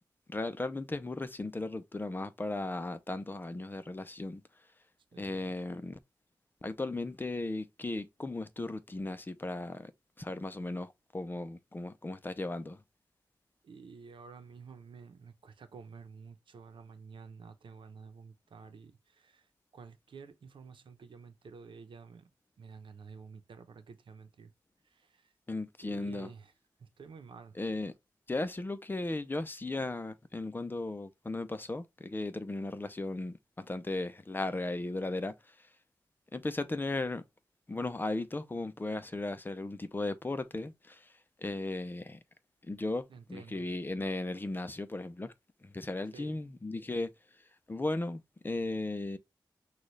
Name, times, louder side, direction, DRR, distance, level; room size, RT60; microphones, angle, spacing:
voice 1, 0.3-4.4 5.2-6.0 6.6-9.9 10.2-12.8 25.5-26.3 27.5-27.9 28.3-35.5 36.3-37.2 37.7-41.1 41.4-42.2 42.6-45.3 45.6-47.1 47.7-49.2, left 2 dB, 25° left, 0.6 m, -36 dB
voice 2, 5.1-5.5 13.6-22.3 22.6-24.5 24.8-25.3 25.8-26.5 26.8-27.6 43.1-43.7 46.1-46.4, right 5 dB, 90° right, 0.8 m, -51 dB
6.2 x 2.4 x 3.2 m
wide cardioid pair, 110°, 8 cm